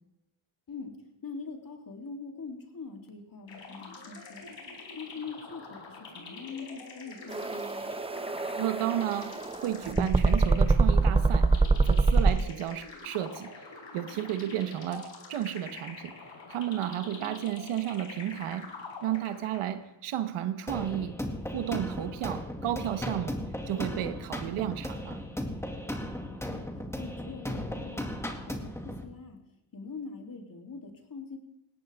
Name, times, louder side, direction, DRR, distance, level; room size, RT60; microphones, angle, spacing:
voice 1, 1.2-4.5 5.0-7.9 17.2-17.4 26.3-26.7 27.0-28.7 29.0-29.4 29.7-31.4, left 4 dB, 40° left, 2 dB, 3.3 m, -43 dB
sound 1, 3.5-19.9, left 3 dB, 60° left, 4.7 m, -46 dB
sound 2, 7.3-12.4, right 3 dB, 10° right, 0.5 m, -24 dB
voice 2, 8.6-11.5 11.9-13.5 13.9-16.1 16.5-18.7 19.0-21.1 21.5-23.4 23.7-25.2, right 11 dB, 90° right, 10 dB, 1.3 m, -32 dB
sound 3, 20.7-29.0, left 1 dB, 5° left, 2.1 m, -36 dB
19.5 x 17.0 x 3.6 m, 0.88 s
cardioid pair, 80°, 49 cm